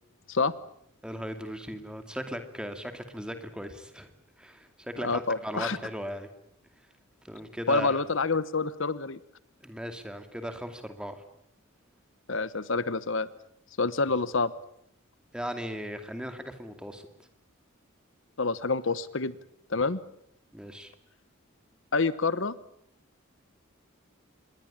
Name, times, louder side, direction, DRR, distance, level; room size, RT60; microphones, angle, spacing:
voice 1, 1.0-4.1 4.4-6.3 7.2-8.0 9.6-11.2 15.3-17.1 20.5-20.9, equal, 5° right, 7 dB, 2.5 m, -37 dB
voice 2, 5.0-5.8 7.7-9.2 12.3-13.3 13.8-14.5 18.4-19.4 19.7-20.0 21.9-22.5, left 3 dB, 65° left, 16 dB, 1.0 m, -27 dB
26.5 x 22.0 x 8.8 m, 0.72 s
head